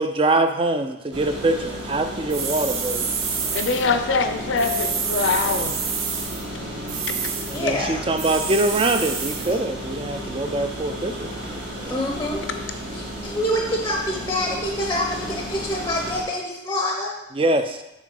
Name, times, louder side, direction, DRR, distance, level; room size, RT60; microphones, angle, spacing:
voice 1, 0.0-3.1 7.5-11.9 17.4-17.8, right 2 dB, 25° right, 8 dB, 0.4 m, -24 dB
sound 1, 1.1-16.2, equal, 60° right, 1.6 m, -33 dB
sound 2, 2.3-3.9 4.6-6.4 6.9-7.6 8.2-9.5, right 6 dB, 85° right, 0.9 m, -28 dB
voice 2, 3.5-5.8, left 4 dB, 65° left, 7 dB, 0.6 m, -23 dB
voice 3, 7.5-8.4 11.9-12.4 12.9-17.1, left 1 dB, 15° left, 0 dB, 0.6 m, -26 dB
6.4 x 3.7 x 5.3 m, 0.92 s
head